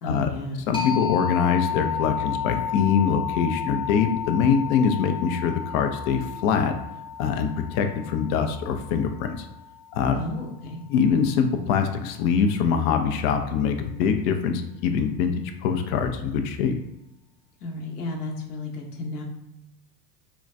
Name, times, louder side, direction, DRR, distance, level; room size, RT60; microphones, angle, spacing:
voice 1, 0.0-0.7 10.2-10.8 17.6-19.2, left 2 dB, 80° left, 0 dB, 1.0 m, -33 dB
voice 2, 0.7-6.7 7.2-9.5 9.9-10.2 10.9-16.7, left 6 dB, 60° left, 6 dB, 0.6 m, -23 dB
sound 1, 0.7-10.1, left 8 dB, 10° left, 0.6 m, -32 dB
3.8 x 2.2 x 2.5 m, 0.89 s
hypercardioid pair, 95°, 46 cm